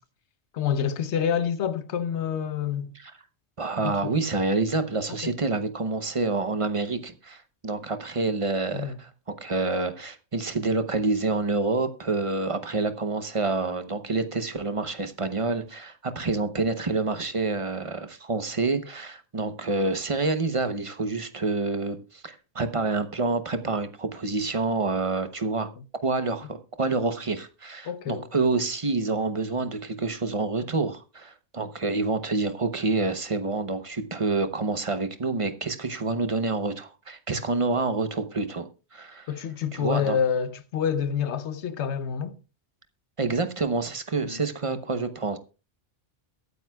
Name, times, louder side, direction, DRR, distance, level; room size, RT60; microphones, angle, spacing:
voice 1, 0.5-2.9 3.8-4.1 5.1-5.3 8.7-9.0 25.8-25.9 27.8-28.3 39.3-42.3 44.2-44.4, left 8 dB, 70° left, 1.1 m, -28 dB
voice 2, 3.6-25.7 26.0-39.3 39.7-40.2 43.2-45.4, right 3 dB, 30° right, 0.8 m, -28 dB
22.5 x 9.2 x 2.3 m
omnidirectional pair, 1.2 m